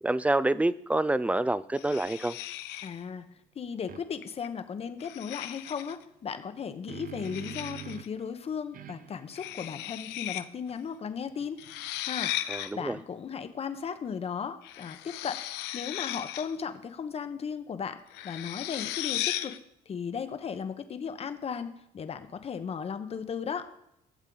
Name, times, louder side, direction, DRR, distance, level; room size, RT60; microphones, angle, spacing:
voice 1, 0.0-2.4 12.5-13.0, right 2 dB, 10° right, 17 dB, 0.3 m, -27 dB
sound 1, 1.7-3.0 4.2-4.5 5.0-6.0 7.2-8.1 9.3-10.4 10.7-10.8 11.6-12.7 14.6-16.6 18.1-19.6, left 13 dB, 90° left, 0.5 m, -36 dB
voice 2, 2.8-3.3 3.5-11.6 12.1-12.3 12.7-15.4 15.7-18.0 18.2-19.5 19.9-23.7, left 6 dB, 35° left, 10 dB, 0.9 m, -36 dB
sound 2, 3.9-4.0 6.4-8.2 8.7-12.1, right 10 dB, 55° right, 0.8 m, -47 dB
11.5 x 7.3 x 3.9 m, 0.77 s
cardioid pair, 110°, 17 cm